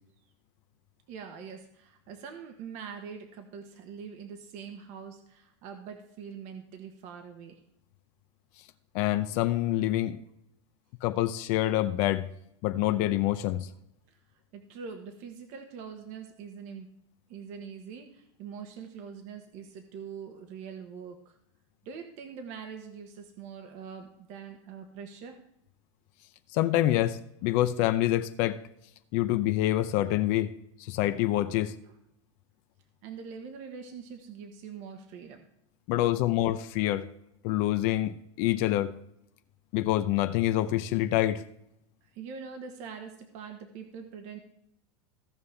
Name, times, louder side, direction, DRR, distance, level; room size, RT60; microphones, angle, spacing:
voice 1, 1.1-7.6 14.1-14.2 14.5-16.9 17.3-21.3 21.8-25.4 33.0-35.4 42.0-44.4, right 6 dB, 50° right, 1.3 m, -43 dB
voice 2, 8.9-10.2 11.0-12.3 12.6-13.7 26.5-28.6 29.1-30.5 30.8-31.7 35.9-37.1 37.4-38.9 39.7-41.4, left 14 dB, 50° left, 0.6 m, -26 dB
16.5 x 5.5 x 3.4 m
supercardioid pair, 135°, 16 cm